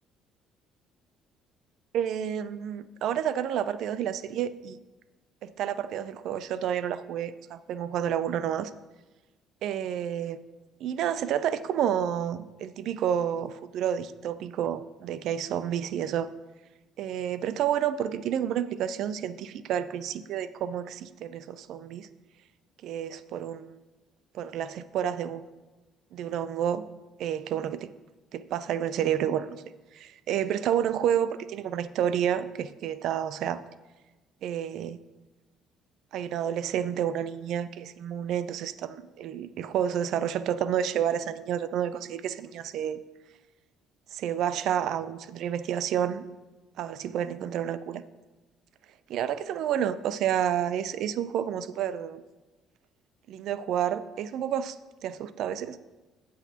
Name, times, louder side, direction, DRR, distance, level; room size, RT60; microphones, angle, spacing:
voice 1, 1.9-4.8 5.4-8.7 9.6-10.4 10.8-16.3 17.0-22.1 22.8-23.8 24.3-25.4 26.1-26.8 27.2-27.9 28.3-29.6 29.9-33.6 34.4-35.0 36.1-43.0 44.1-46.2 46.8-48.0 49.1-52.2 53.3-54.8 55.0-55.8, right 9 dB, 70° right, 14 dB, 0.5 m, -30 dB
17.5 x 6.3 x 2.9 m, 1.2 s
supercardioid pair, 75°, 0 cm